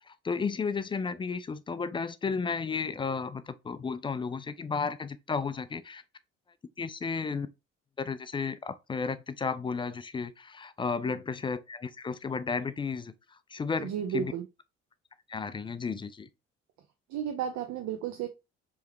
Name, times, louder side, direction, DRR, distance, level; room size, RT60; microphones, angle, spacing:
voice 1, 0.1-6.0 6.8-7.5 8.0-13.1 13.5-14.3 15.3-16.3, left 5 dB, 15° left, 0.3 m, -33 dB
voice 2, 13.8-14.4 17.1-18.3, right 9 dB, 50° right, 0.6 m, -33 dB
4.7 x 3.0 x 3.2 m
figure-of-eight pair, 45°, 37 cm